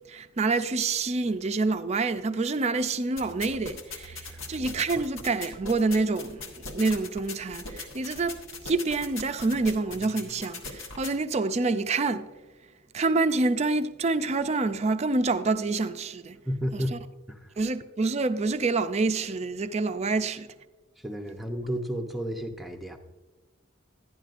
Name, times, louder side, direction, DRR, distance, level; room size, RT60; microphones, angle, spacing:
voice 1, 0.1-12.3 12.9-16.4 16.7-17.0 17.6-20.5, right 3 dB, 35° right, 0.4 m, -27 dB
sound 1, 3.2-11.1, left 3 dB, 80° left, 1.3 m, -41 dB
voice 2, 16.4-17.0 17.3-17.5 21.0-23.0, equal, ahead, 0.7 m, -32 dB
11.5 x 10.5 x 2.5 m
head